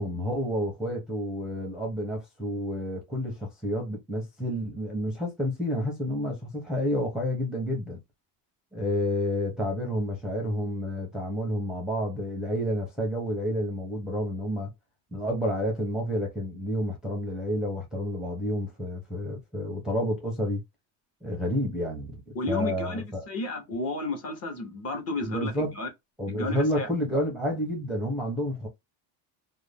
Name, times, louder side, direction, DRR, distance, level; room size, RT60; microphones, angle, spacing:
voice 1, 0.0-8.0 8.7-14.7 15.1-20.6 21.2-23.3 25.2-25.7 26.2-28.7, equal, ahead, 0.6 m, -30 dB
voice 2, 22.3-25.9 26.3-26.9, left 2 dB, 35° left, 0.9 m, -32 dB
2.5 x 2.1 x 3.3 m
cardioid pair, 150°, 42 cm